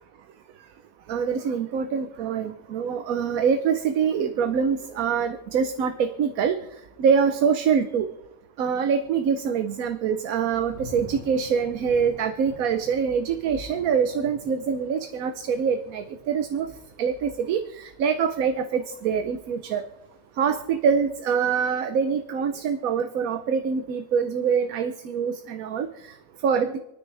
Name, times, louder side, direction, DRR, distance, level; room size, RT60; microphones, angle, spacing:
voice 1, 1.1-6.6 7.0-8.1 8.6-16.7 17.0-19.8 20.4-26.1 26.4-26.8, right 6 dB, 90° right, 9 dB, 1.2 m, -24 dB
Thunder / Rain, 10.2-21.1 21.6-22.0, equal, 45° right, 4.6 m, -48 dB
28.0 x 9.6 x 3.3 m, 0.91 s
omnidirectional pair, 1.4 m